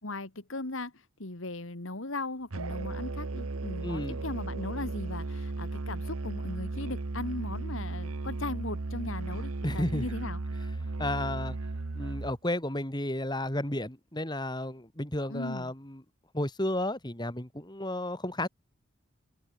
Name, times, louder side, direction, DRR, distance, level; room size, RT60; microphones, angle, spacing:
voice 1, 0.0-0.9 1.2-10.4 15.3-15.7, left 2 dB, 70° left, 2.2 m, -38 dB
Musical instrument, 2.5-12.4, right 3 dB, 90° right, 1.0 m, -35 dB
voice 2, 3.8-4.2 9.6-10.1 11.0-11.6 11.9-16.0 16.3-18.5, left 1 dB, 20° left, 3.2 m, -32 dB
head